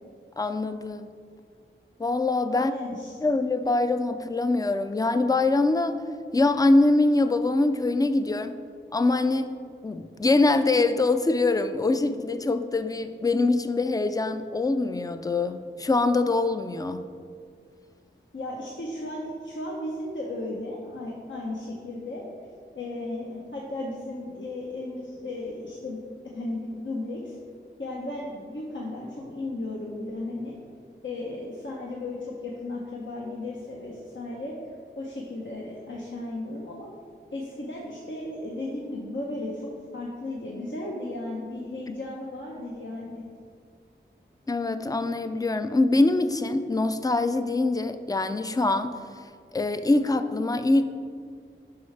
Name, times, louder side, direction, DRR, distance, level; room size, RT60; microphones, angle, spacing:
voice 1, 0.4-1.1 2.0-2.7 3.2-6.0 6.3-8.6 8.9-9.5 9.8-17.1 44.5-49.0 49.5-50.8, left 2 dB, 20° left, 10 dB, 0.4 m, -24 dB
voice 2, 2.5-3.2 18.3-22.2 22.7-26.0 26.3-27.4 27.8-30.6 31.0-34.5 35.0-36.9 37.3-39.6 39.9-43.3, left 2 dB, 70° left, -4 dB, 0.9 m, -35 dB
9.3 x 5.6 x 3.3 m, 2.2 s
wide cardioid pair, 65°, 20 cm